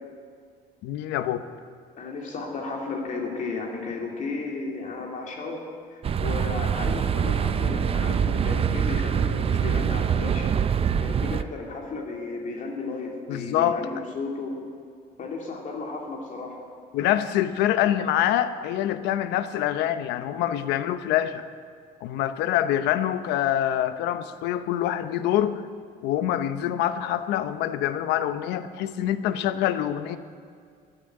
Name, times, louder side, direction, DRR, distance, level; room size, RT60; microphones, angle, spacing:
voice 1, 0.8-1.5 13.3-14.0 16.9-21.5 22.0-25.6 26.0-30.2, left 11 dB, 90° left, 11 dB, 0.8 m, -25 dB
voice 2, 2.0-5.6 5.9-10.5 11.0-14.6 15.2-16.6, left 3 dB, 50° left, 0 dB, 2.8 m, -34 dB
sound 1, 6.0-11.4, right 7 dB, 35° right, 0.5 m, -24 dB
14.5 x 9.0 x 8.9 m, 2.2 s
cardioid pair, 110°, 17 cm